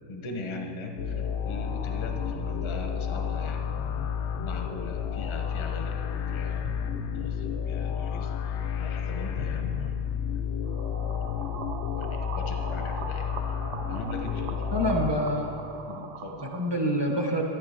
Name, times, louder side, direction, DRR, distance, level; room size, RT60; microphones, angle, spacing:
voice 1, 0.1-10.1 11.4-11.6 12.0-13.3 13.9-15.3 15.8-16.5, left 2 dB, 40° left, 4 dB, 0.4 m, -40 dB
sound 1, 1.0-15.1, left 7 dB, 85° left, 0.6 m, -31 dB
sound 2, 10.6-16.7, right 6 dB, 65° right, 0.8 m, -41 dB
voice 2, 14.7-15.5 16.4-17.4, equal, 35° right, 0 dB, 0.4 m, -26 dB
13.0 x 9.7 x 4.3 m, 3.0 s
omnidirectional pair, 1.8 m